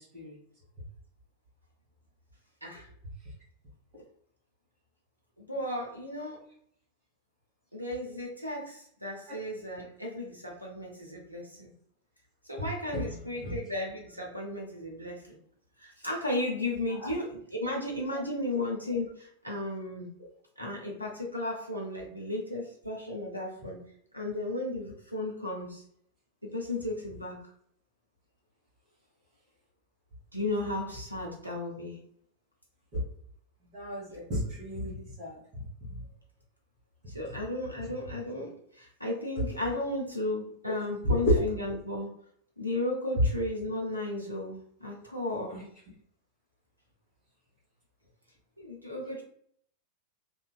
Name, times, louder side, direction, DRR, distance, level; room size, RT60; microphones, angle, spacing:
voice 1, 5.4-6.4 7.7-11.7 12.5-15.4 15.8-20.1 20.6-23.8 24.1-25.8 26.4-27.4 30.3-32.0 37.1-42.1 42.6-45.7 48.6-49.2, left 1 dB, 90° right, -1 dB, 0.7 m, -34 dB
voice 2, 33.7-35.4 41.0-41.1 45.5-45.6, equal, 45° right, -9 dB, 1.2 m, -33 dB
2.6 x 2.3 x 2.3 m, 0.65 s
figure-of-eight pair, 90°, 0 cm